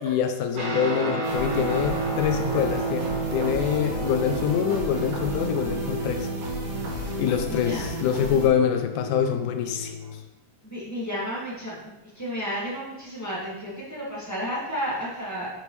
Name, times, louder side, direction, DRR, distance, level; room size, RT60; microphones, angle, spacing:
voice 1, 0.0-6.3 7.2-10.2, left 8 dB, 80° left, 7 dB, 2.0 m, -25 dB
Guitar, 0.5-10.2, right 1 dB, 90° right, 3.8 m, -31 dB
sound 1, 1.2-8.5, right 2 dB, 65° right, 3.2 m, -34 dB
voice 2, 7.4-7.9 10.6-15.5, equal, 15° left, -7 dB, 0.6 m, -32 dB
7.1 x 6.9 x 3.1 m, 1.1 s
omnidirectional pair, 3.7 m